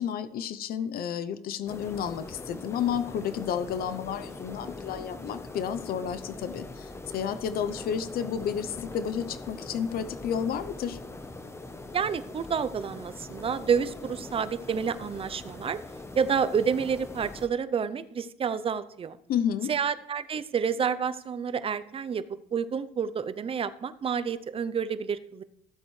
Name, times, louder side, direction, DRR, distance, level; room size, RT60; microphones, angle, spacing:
voice 1, 0.0-11.0 19.3-19.7, left 8 dB, 65° left, 12 dB, 0.7 m, -31 dB
sound 1, 1.7-17.5, left 2 dB, 15° left, 0.9 m, -42 dB
voice 2, 11.9-15.8 16.2-19.2 19.7-22.2 22.5-25.4, right 6 dB, 35° right, 14 dB, 0.6 m, -29 dB
15.0 x 7.7 x 3.2 m, 0.79 s
cardioid pair, 110°, 17 cm